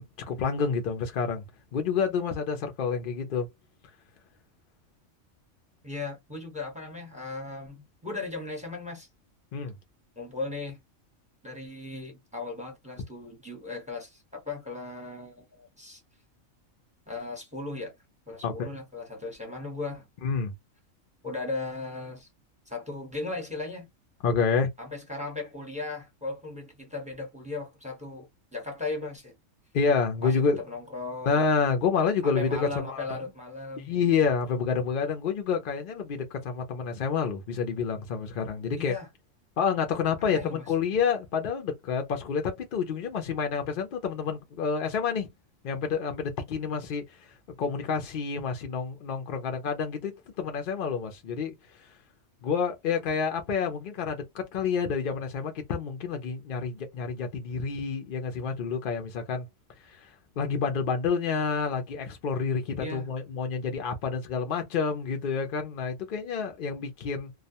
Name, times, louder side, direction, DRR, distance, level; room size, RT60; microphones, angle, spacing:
voice 1, 0.0-1.4 1.7-3.5 9.5-9.7 18.4-18.7 20.2-20.5 24.2-24.7 29.7-30.6 31.3-33.2 33.8-38.9 39.6-45.3 45.6-50.1 50.4-51.6 51.8-51.9 52.4-59.5 59.8-67.3, left 5 dB, 60° left, 0.5 m, -28 dB
voice 2, 5.8-9.1 10.2-10.8 11.4-16.0 17.1-17.9 18.3-20.1 21.2-22.3 22.7-23.9 24.8-29.3 30.2-31.5 32.2-33.9 38.8-39.1 40.2-40.7 62.8-63.1, left 3 dB, 5° right, 0.7 m, -37 dB
2.3 x 2.1 x 2.7 m
omnidirectional pair, 1.4 m